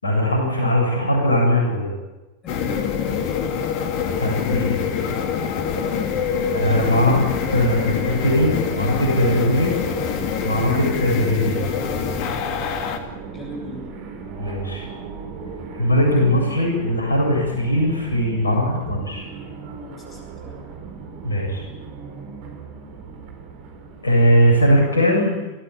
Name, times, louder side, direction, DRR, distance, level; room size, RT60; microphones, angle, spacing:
voice 1, 0.0-1.9 4.2-5.1 6.5-9.7 10.4-11.6 14.4-14.9 15.8-19.2 21.2-21.6 24.0-25.4, equal, 75° left, 1 dB, 7.5 m, -20 dB
voice 2, 2.4-3.6 6.4-6.8 13.3-14.0 19.8-20.7, equal, 25° left, 2 dB, 7.6 m, -39 dB
sound 1, 2.5-13.0, left 7 dB, 45° left, 2.5 m, -25 dB
sound 2, 5.7-24.9, right 5 dB, 45° right, 4.5 m, -36 dB
29.0 x 15.0 x 8.7 m, 1.1 s
figure-of-eight pair, 90°, 0 cm